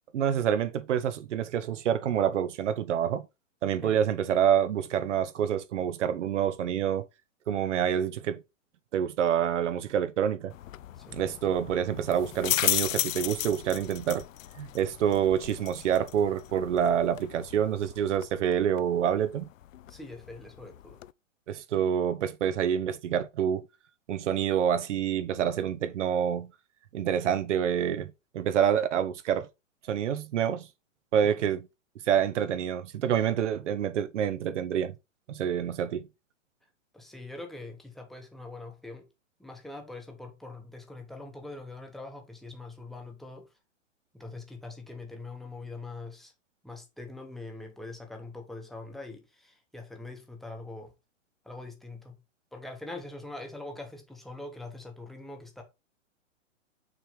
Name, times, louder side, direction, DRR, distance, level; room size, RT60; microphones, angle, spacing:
voice 1, 0.1-3.3 3.6-7.1 7.5-8.4 8.9-10.5 11.1-14.2 14.6-19.5 21.5-23.7 24.1-26.5 26.9-29.5 29.9-30.7 31.1-31.6 32.1-34.9 35.3-36.1, right 9 dB, 65° right, 1.0 m, -27 dB
sound 1, 10.5-21.1, left 13 dB, 85° left, 0.5 m, -35 dB
voice 2, 19.9-21.0 31.2-31.4 36.9-39.1 39.4-43.5 44.1-46.3 46.6-50.9 51.4-52.2 52.5-55.6, left 2 dB, ahead, 1.0 m, -43 dB
6.3 x 3.3 x 5.2 m
hypercardioid pair, 135°, 38 cm